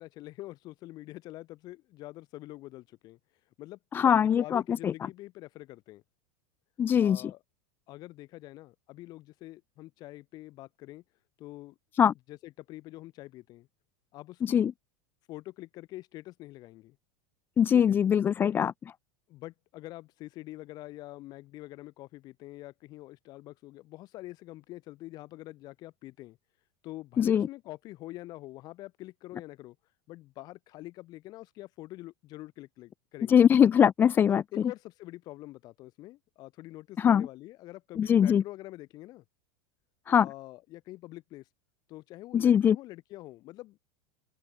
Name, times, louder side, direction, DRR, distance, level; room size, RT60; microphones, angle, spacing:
voice 1, 0.0-3.2 3.6-6.0 7.0-7.4 7.9-11.0 11.4-11.8 12.3-13.7 14.1-14.6 15.3-17.0 17.7-18.0 19.3-26.4 26.8-29.8 30.1-33.4 34.3-39.2 40.2-41.5 41.9-43.8, left 17 dB, 40° left, 5.2 m, -45 dB
voice 2, 3.9-4.9 6.8-7.3 12.0-12.1 14.4-14.7 17.6-18.7 27.2-27.5 33.3-34.4 37.0-37.3 38.0-38.4 40.1-40.3 42.3-42.8, left 8 dB, 20° left, 0.7 m, -22 dB
supercardioid pair, 155°, 11 cm